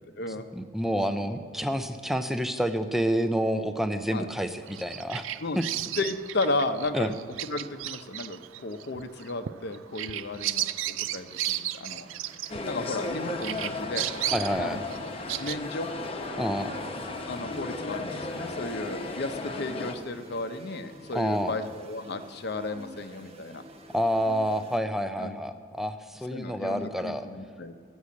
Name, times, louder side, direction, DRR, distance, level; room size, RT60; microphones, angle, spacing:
voice 1, 0.5-5.2 5.6-5.7 6.9-7.1 14.3-14.8 16.4-16.7 21.1-21.5 23.9-27.2, equal, ahead, 9 dB, 0.5 m, -28 dB
Bird vocalization bird call bird song, 4.7-13.1 13.4-15.6, right 13 dB, 80° right, 0.4 m, -34 dB
voice 2, 6.0-7.2 7.4-12.1 12.6-14.1 14.6-14.9 15.4-15.9 17.3-23.6 25.2-25.4 26.3-27.7, left 2 dB, 55° left, 9 dB, 0.7 m, -34 dB
sound 1, 11.2-24.8, equal, 30° right, 1.1 m, -48 dB
sound 2, 12.5-19.9, left 2 dB, 30° left, 0.9 m, -35 dB
13.5 x 6.3 x 8.4 m, 2.1 s
head